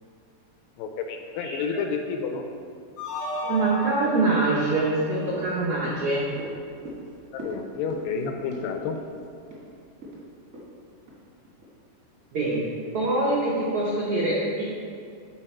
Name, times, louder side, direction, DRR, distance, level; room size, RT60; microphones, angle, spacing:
voice 1, 0.8-2.4 7.3-9.0, left 5 dB, 85° left, 4 dB, 2.3 m, -30 dB
voice 2, 1.4-1.8 3.4-6.3 12.3-12.7 12.9-14.6, right 2 dB, 85° right, -6 dB, 1.2 m, -24 dB
sound 1, 3.0-6.1, equal, 55° left, 1.6 m, -34 dB
sound 2, 5.3-11.8 12.1-12.2, equal, 45° right, 1.0 m, -42 dB
7.6 x 4.9 x 4.4 m, 2.4 s
omnidirectional pair, 4.1 m